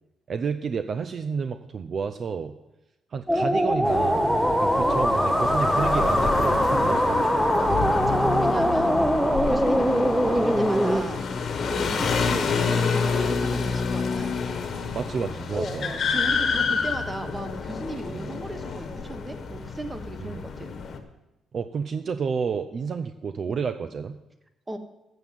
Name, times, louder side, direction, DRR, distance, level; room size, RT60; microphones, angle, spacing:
voice 1, 0.3-2.5 3.1-4.3 4.6-7.5 11.9-12.0 14.9-15.9 18.1-18.3 20.2-20.4 21.5-24.1, right 6 dB, 50° right, 9 dB, 0.5 m, -30 dB
sound 1, 3.3-11.0, equal, 5° right, 0.7 m, -22 dB
sound 2, 3.8-21.0, left 5 dB, 55° left, 1.2 m, -28 dB
voice 2, 7.6-9.0 9.5-11.3 11.7-14.4 15.5-20.7 24.7-24.8, right 2 dB, 20° right, 8 dB, 1.2 m, -35 dB
8.1 x 7.1 x 7.4 m, 0.96 s
cardioid pair, 90°, 0 cm